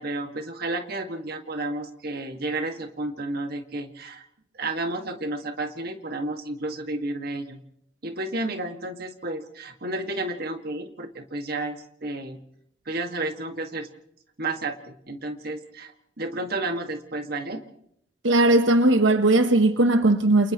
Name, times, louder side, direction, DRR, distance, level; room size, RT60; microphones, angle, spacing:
voice 1, 0.0-4.2 4.5-7.6 8.0-12.4 12.9-13.9 14.4-17.6, right 2 dB, 55° right, 2.0 m, -31 dB
voice 2, 18.2-20.5, right 2 dB, 85° right, 1.1 m, -18 dB
29.0 x 29.0 x 3.1 m
head